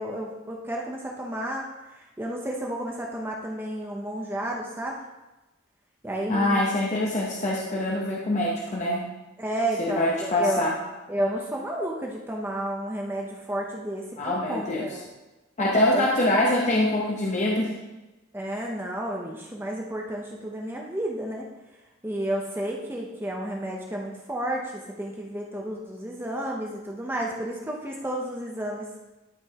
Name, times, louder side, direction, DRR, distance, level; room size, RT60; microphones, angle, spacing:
voice 1, 0.0-1.7 1.9-5.0 6.0-6.6 9.4-10.6 11.1-15.0 15.9-16.1 18.3-21.5 22.0-28.9, right 1 dB, 10° right, -1 dB, 0.7 m, -31 dB
voice 2, 6.3-9.0 9.8-10.7 14.2-14.9 15.6-17.7, left 1 dB, 35° left, -3 dB, 0.9 m, -24 dB
12.0 x 5.2 x 2.9 m, 1.1 s
head